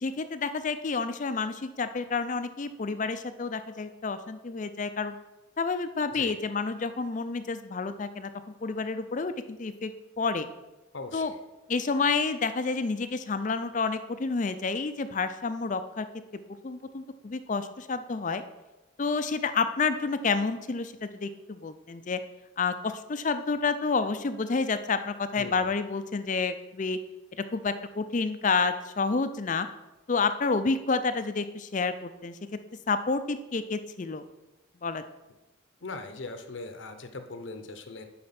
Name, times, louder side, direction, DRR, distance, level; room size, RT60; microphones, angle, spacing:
voice 1, 0.0-5.1 5.6-8.3 8.6-10.5 11.1-11.3 11.7-16.1 16.6-18.4 19.0-22.2 22.6-27.0 27.5-29.7 30.1-32.3 32.9-34.2 34.8-35.0, left 4 dB, 35° left, 11 dB, 0.4 m, -29 dB
voice 2, 10.9-11.4 25.4-25.7 35.8-38.0, left 3 dB, 65° left, 8 dB, 0.8 m, -40 dB
9.7 x 4.3 x 5.8 m, 1.1 s
head